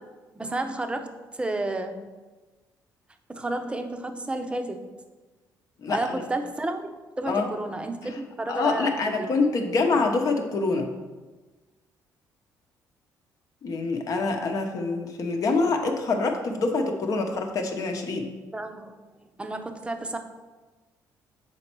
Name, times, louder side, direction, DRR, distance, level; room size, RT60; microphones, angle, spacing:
voice 1, 0.3-2.0 3.3-4.8 5.9-6.9 7.2-9.3 18.5-19.0 19.4-20.2, right 2 dB, 15° right, 6 dB, 0.6 m, -31 dB
voice 2, 5.8-6.2 7.3-7.5 8.5-10.9 13.6-18.3, left 3 dB, 55° left, 4 dB, 1.0 m, -25 dB
6.5 x 4.3 x 4.5 m, 1.3 s
cardioid pair, 95°, 7 cm